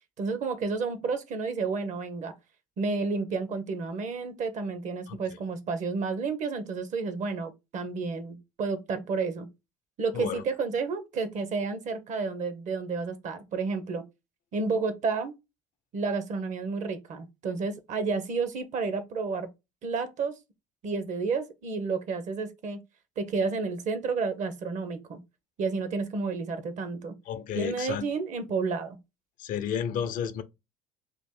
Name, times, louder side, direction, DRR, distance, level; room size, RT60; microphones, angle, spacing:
voice 1, 0.2-2.3 2.8-9.5 10.0-14.0 14.5-15.4 15.9-19.5 19.8-20.4 20.8-22.8 23.2-25.2 25.6-27.1 27.5-29.0, right 4 dB, 50° right, 0.9 m, -31 dB
voice 2, 27.3-28.1 29.4-30.4, left 8 dB, 60° left, 0.6 m, -31 dB
2.9 x 2.5 x 3.7 m
hypercardioid pair, 70°, 16 cm